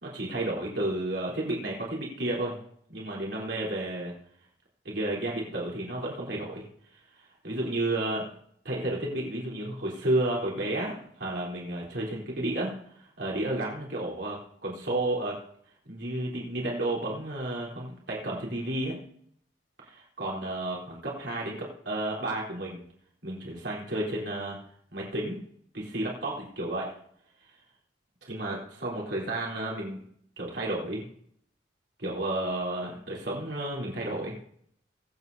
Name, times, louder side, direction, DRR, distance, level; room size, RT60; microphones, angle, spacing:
voice 1, 0.0-2.6 2.9-4.1 4.9-6.7 6.9-7.0 7.4-8.3 8.6-12.8 13.2-15.4 15.9-19.0 19.8-22.8 23.2-24.6 24.9-25.4 25.7-26.9 28.3-30.1 30.4-31.1 32.0-34.4, right 1 dB, 70° right, -3 dB, 3.6 m, -32 dB
23.0 x 8.0 x 2.7 m, 0.66 s
head